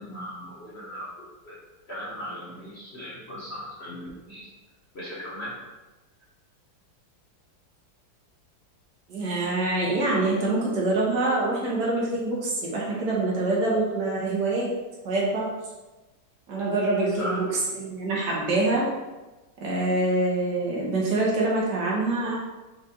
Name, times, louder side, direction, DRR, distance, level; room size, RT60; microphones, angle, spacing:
voice 1, 0.0-1.6 1.9-4.5 4.9-5.5 17.2-17.4, equal, 40° left, -7 dB, 1.0 m, -37 dB
voice 2, 9.1-14.7 15.0-15.5 16.5-17.5 17.7-18.8 19.6-22.3, right 2 dB, 65° right, -4 dB, 1.5 m, -25 dB
5.0 x 2.5 x 4.2 m, 1.1 s
omnidirectional pair, 2.1 m